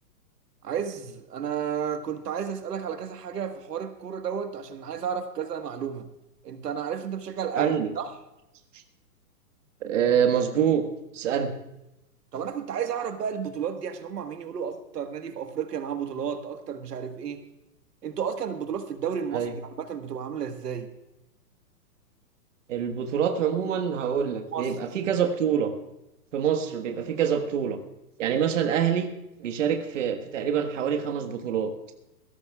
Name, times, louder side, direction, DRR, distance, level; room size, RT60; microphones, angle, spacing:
voice 1, 0.6-6.1 6.4-8.1 12.3-17.4 18.0-20.9 24.5-24.7, right 7 dB, 75° right, 7 dB, 1.6 m, -32 dB
voice 2, 7.6-7.9 9.8-10.8 11.1-11.5 19.3-19.5 22.7-25.7 26.3-27.8 28.2-29.1 29.4-31.7, right 8 dB, 50° right, 5 dB, 1.5 m, -25 dB
21.0 x 16.5 x 2.3 m, 0.91 s
hypercardioid pair, 165°, 48 cm